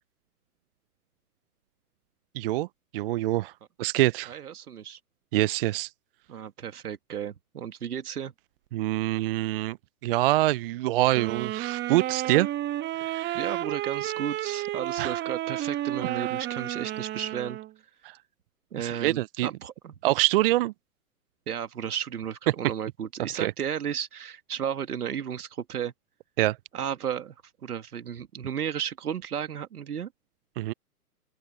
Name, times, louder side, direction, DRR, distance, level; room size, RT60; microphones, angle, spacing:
voice 1, 2.4-2.7 2.9-3.5 3.8-4.3 5.3-5.9 8.7-9.8 10.0-12.5 13.0-13.6 15.0-15.2 16.0-16.3 18.8-19.5 20.0-20.7 23.4-23.5 26.4-26.6 30.6-30.7, right 17 dB, 40° right, 0.6 m, -25 dB
voice 2, 4.3-5.0 6.3-8.3 13.3-17.6 18.7-19.9 21.5-25.9 26.7-27.3 27.6-30.1, right 8 dB, 75° right, 2.3 m, -34 dB
sound 1, 11.1-17.7, right 14 dB, 25° right, 1.7 m, -31 dB
open air
hypercardioid pair, 120°, 46 cm